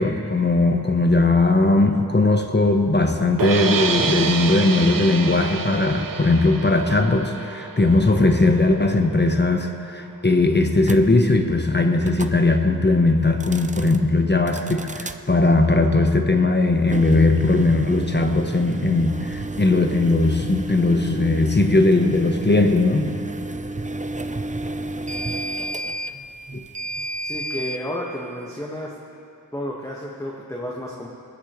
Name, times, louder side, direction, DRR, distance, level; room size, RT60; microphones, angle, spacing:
voice 1, 0.0-23.1 26.5-26.6, left 2 dB, 30° left, 5 dB, 1.0 m, -19 dB
sound 1, 3.4-9.5, right 5 dB, 60° right, 0.8 m, -28 dB
sound 2, 10.8-11.0 12.0-12.4 13.3-14.0 14.5-15.2 16.8-27.8, right 1 dB, 20° right, 0.6 m, -31 dB
voice 2, 27.2-28.9 29.5-31.1, equal, 10° left, -3 dB, 1.5 m, -31 dB
20.5 x 13.5 x 3.2 m, 2.6 s
cardioid pair, 45°, 37 cm